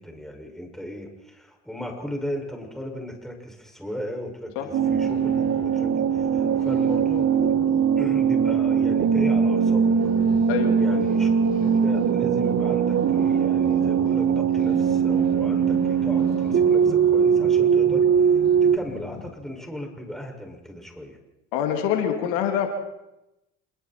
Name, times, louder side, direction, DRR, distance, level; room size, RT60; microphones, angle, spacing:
voice 1, 0.0-9.9 10.8-21.2, equal, ahead, 1 dB, 6.5 m, -36 dB
sound 1, 4.7-18.8, right 7 dB, 45° right, 1.4 m, -21 dB
sound 2, 4.8-19.3, left 9 dB, 55° left, 3.0 m, -41 dB
voice 2, 21.5-22.7, left 9 dB, 80° left, 4 dB, 2.7 m, -25 dB
27.5 x 22.0 x 4.6 m, 0.92 s
hypercardioid pair, 70°, 33 cm